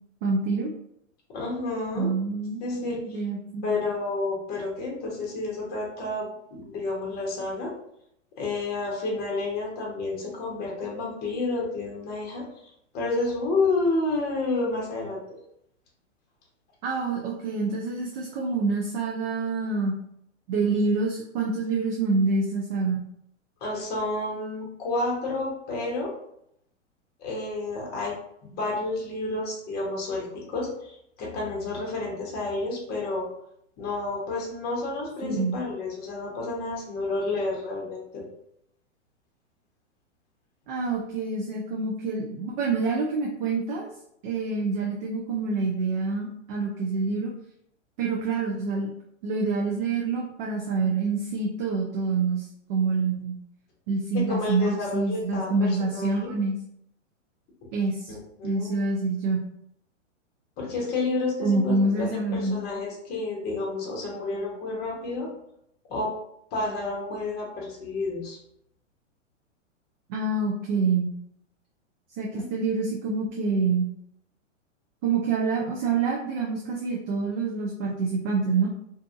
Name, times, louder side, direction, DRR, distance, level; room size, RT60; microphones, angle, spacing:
voice 1, 0.2-0.7 1.9-3.7 16.8-19.9 20.5-23.0 35.2-35.5 40.7-43.9 44.2-47.3 48.0-48.9 49.2-53.4 53.9-56.6 57.7-58.1 58.4-59.4 61.4-62.6 70.1-71.1 72.2-73.9 75.0-78.7, right 4 dB, 40° right, -2 dB, 0.5 m, -26 dB
voice 2, 1.3-2.1 2.6-3.2 3.6-7.7 8.4-15.4 23.6-26.1 27.2-28.1 28.5-33.3 33.8-38.3 54.1-56.3 58.1-58.7 60.6-65.3 65.9-66.1 66.5-68.4 72.3-72.5, left 3 dB, 25° left, -2 dB, 0.8 m, -30 dB
2.6 x 2.4 x 2.4 m, 0.74 s
hypercardioid pair, 120°, 38 cm